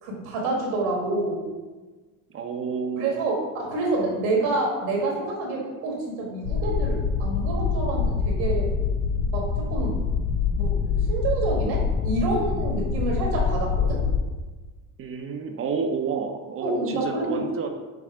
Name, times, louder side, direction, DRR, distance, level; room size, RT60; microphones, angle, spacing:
voice 1, 0.0-1.5 3.0-8.7 9.3-10.0 10.5-14.0 16.6-17.4, right 2 dB, 80° right, -1 dB, 1.5 m, -28 dB
voice 2, 2.3-3.1 15.0-17.7, right 5 dB, 35° right, 5 dB, 0.5 m, -30 dB
sound 1, 6.4-14.2, left 5 dB, 70° left, 0.7 m, -25 dB
5.9 x 2.1 x 4.4 m, 1.3 s
supercardioid pair, 100°, 41 cm